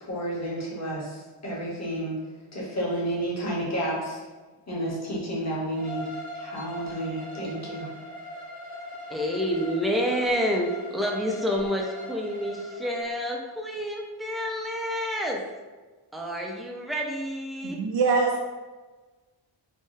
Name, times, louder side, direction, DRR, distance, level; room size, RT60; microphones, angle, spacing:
voice 1, 0.0-2.2 2.5-4.2 4.7-6.1 6.4-7.9, right 1 dB, 35° left, -5 dB, 1.1 m, -31 dB
Bowed string instrument, 5.7-12.9, equal, 15° right, 0.8 m, -40 dB
voice 2, 9.1-15.4 16.1-17.8, equal, ahead, -1 dB, 0.4 m, -28 dB
voice 3, 17.6-18.4, right 4 dB, 60° right, 0 dB, 0.6 m, -23 dB
3.6 x 2.1 x 2.6 m, 1.3 s
wide cardioid pair, 60°, 49 cm